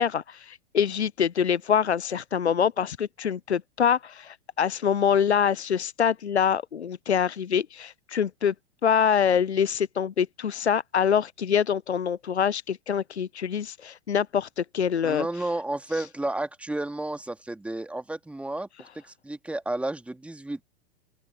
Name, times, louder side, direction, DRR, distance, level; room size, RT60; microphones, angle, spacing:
voice 1, 0.0-8.5 8.8-15.5 15.9-16.1, left 7 dB, 80° left, 0.6 m, -25 dB
voice 2, 15.0-20.6, right 2 dB, 5° right, 2.4 m, -32 dB
open air
figure-of-eight pair, 105°, 33 cm